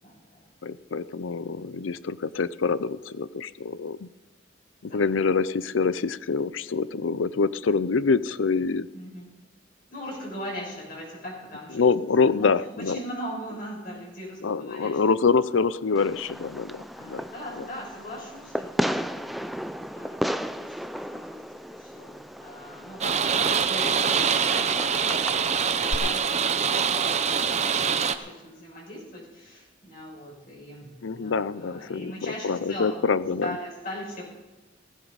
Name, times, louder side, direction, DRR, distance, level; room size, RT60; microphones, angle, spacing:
voice 1, 0.0-0.5 4.8-5.0 8.9-9.3 9.9-11.8 12.3-12.5 12.8-15.0 16.7-25.4 25.7-27.5 28.1-33.0 33.4-34.2, equal, 50° left, -3 dB, 6.1 m, -40 dB
voice 2, 0.6-4.1 4.9-8.9 11.7-13.0 14.4-17.2 31.0-32.1 32.4-33.6, left 4 dB, 80° left, 17 dB, 0.6 m, -25 dB
Fireworks, 16.0-26.0, equal, ahead, 0.4 m, -34 dB
sound 1, 23.0-28.2, right 6 dB, 35° right, 0.7 m, -24 dB
16.5 x 15.0 x 4.1 m, 1.1 s
head